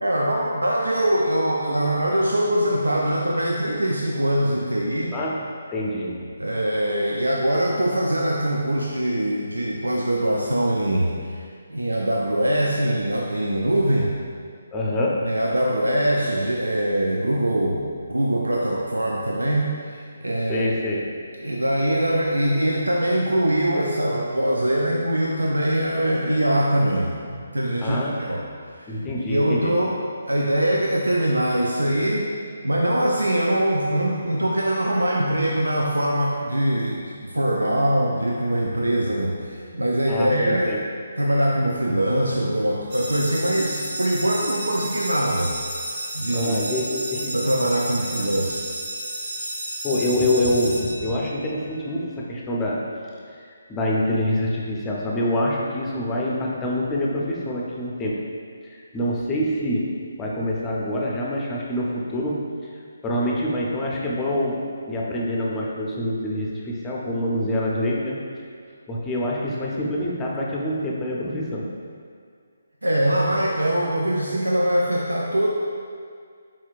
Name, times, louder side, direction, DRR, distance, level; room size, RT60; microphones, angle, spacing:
voice 1, 0.0-5.1 6.4-11.4 11.7-14.2 15.3-17.8 18.1-20.7 21.4-28.0 28.3-28.4 28.7-29.0 29.3-30.0 30.3-32.3 32.6-40.8 41.2-45.7 46.1-46.6 47.3-48.6 72.8-75.5, right 1 dB, 85° right, -2 dB, 0.4 m, -23 dB
voice 2, 5.1-5.4 5.7-6.2 14.7-15.2 20.5-21.0 27.8-28.3 28.9-29.8 40.1-40.8 46.3-47.4 47.6-47.7 49.4-49.5 49.8-52.8 53.3-53.4 53.7-58.2 58.6-59.9 60.2-62.4 63.0-68.2 68.9-71.7, left 1 dB, 15° left, -4 dB, 0.6 m, -25 dB
sound 1, 42.9-51.6, right 1 dB, 55° right, 1.0 m, -32 dB
4.4 x 4.3 x 2.4 m, 2.1 s
figure-of-eight pair, 145°, 0 cm